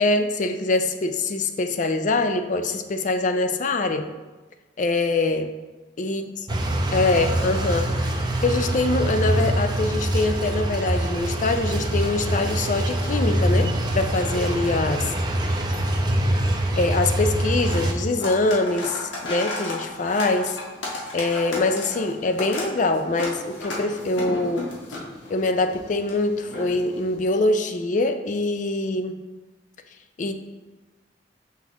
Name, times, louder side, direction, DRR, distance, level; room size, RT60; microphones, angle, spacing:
voice 1, 0.0-4.1 4.8-5.5 6.0-6.3 6.9-15.1 16.8-20.6 21.1-25.0 25.3-29.2 30.2-30.3, left 2 dB, 45° left, 7 dB, 0.4 m, -24 dB
sound 1, 6.5-17.9, right 1 dB, 25° right, 0.6 m, -24 dB
sound 2, 12.7-27.1, left 2 dB, 85° left, 1.3 m, -36 dB
5.9 x 5.8 x 3.0 m, 1.2 s
head